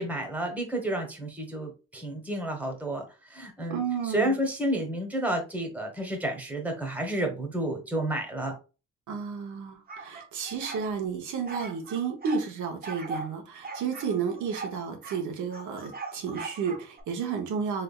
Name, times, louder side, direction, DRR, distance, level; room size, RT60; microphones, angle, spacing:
voice 1, 0.0-8.5, right 1 dB, 5° right, 2 dB, 1.2 m, -31 dB
voice 2, 3.7-4.3 9.1-17.8, right 6 dB, 75° right, 3 dB, 1.0 m, -32 dB
sound 1, 9.9-10.9 11.5-12.4 12.8-13.3 13.6-15.2 15.5-17.0, right 3 dB, 30° right, 0.9 m, -40 dB
3.5 x 3.3 x 2.3 m, 0.31 s
cardioid pair, 90°, 30 cm